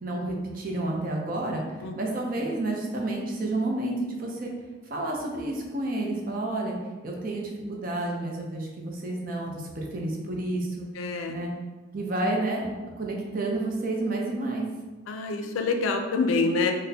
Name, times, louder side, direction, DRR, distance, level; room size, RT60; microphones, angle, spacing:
voice 1, 0.0-4.5 4.9-6.8 7.0-10.9 11.3-11.5 11.9-12.7 13.0-14.7, right 2 dB, 45° right, -1 dB, 0.6 m, -30 dB
voice 2, 11.0-11.4 15.1-16.7, left 3 dB, 85° left, 5 dB, 0.4 m, -26 dB
4.0 x 2.1 x 2.7 m, 1.3 s
head